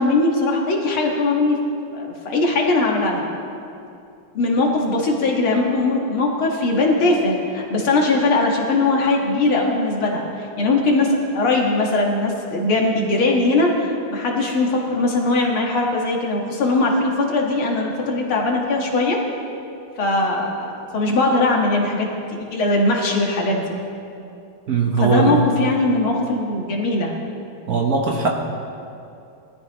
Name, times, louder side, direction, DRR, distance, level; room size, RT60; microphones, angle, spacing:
voice 1, 0.0-1.6 1.9-3.2 4.3-19.2 20.0-23.7 25.0-27.1, left 2 dB, 75° left, -1 dB, 2.5 m, -20 dB
voice 2, 24.7-25.4 27.7-28.3, right 5 dB, 55° right, 1 dB, 1.2 m, -19 dB
20.5 x 13.5 x 3.1 m, 2.6 s
omnidirectional pair, 2.3 m